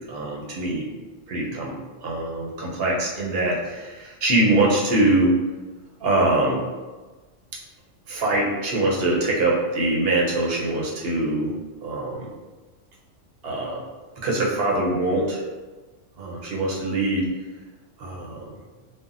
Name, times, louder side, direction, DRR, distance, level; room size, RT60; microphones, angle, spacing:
voice 1, 0.1-0.9 1.3-1.7 2.0-5.3 6.0-6.6 8.1-11.5 11.8-12.3 13.4-13.8 14.2-15.4 16.2-17.3 18.0-18.5, right 2 dB, 60° right, -3 dB, 0.8 m, -23 dB
3.4 x 2.0 x 2.5 m, 1.3 s
omnidirectional pair, 1.3 m